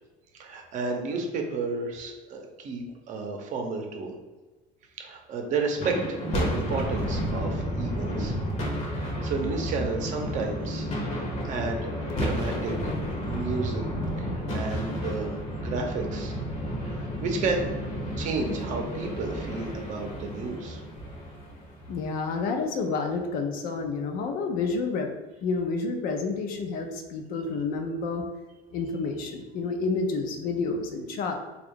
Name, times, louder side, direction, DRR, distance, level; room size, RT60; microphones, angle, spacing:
voice 1, 0.3-4.1 5.0-8.3 8.9-12.9 13.2-13.8 14.2-16.4 16.8-17.7 18.2-20.8, right 4 dB, 50° right, 2 dB, 0.7 m, -32 dB
sound 1, 5.7-22.1, equal, 40° left, 0.9 m, -31 dB
voice 2, 21.9-25.1 25.4-28.2 28.7-31.3, left 4 dB, 60° left, 4 dB, 0.6 m, -29 dB
3.7 x 2.4 x 3.6 m, 1.2 s
cardioid pair, 140°, 17 cm